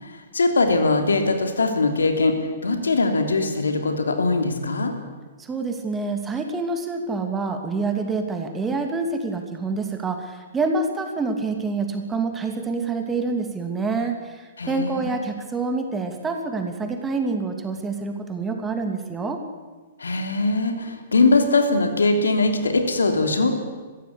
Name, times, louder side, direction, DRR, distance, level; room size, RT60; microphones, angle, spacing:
voice 1, 0.0-4.9 14.6-15.1 20.0-23.6, left 3 dB, 75° left, 5 dB, 3.1 m, -21 dB
voice 2, 5.4-19.4, right 3 dB, 15° right, 5 dB, 2.7 m, -27 dB
22.0 x 15.5 x 8.5 m, 1.4 s
figure-of-eight pair, 110°, 0 cm